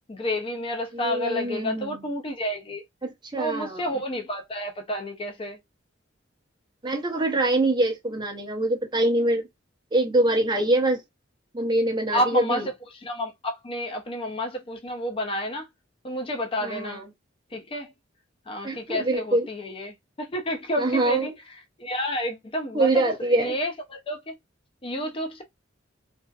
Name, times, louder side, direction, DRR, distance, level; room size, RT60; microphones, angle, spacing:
voice 1, 0.1-2.8 3.4-5.6 12.1-12.6 12.9-15.7 16.0-17.0 17.5-17.9 18.5-21.3 21.8-23.0 23.3-24.4 24.8-25.4, equal, 30° left, 0.5 m, -30 dB
voice 2, 0.9-2.0 3.0-3.8 6.8-9.5 9.9-11.0 11.5-12.7 16.6-17.1 18.6-19.5 20.8-21.3 22.7-23.6, right 2 dB, 25° right, 0.8 m, -24 dB
3.3 x 2.6 x 2.3 m
head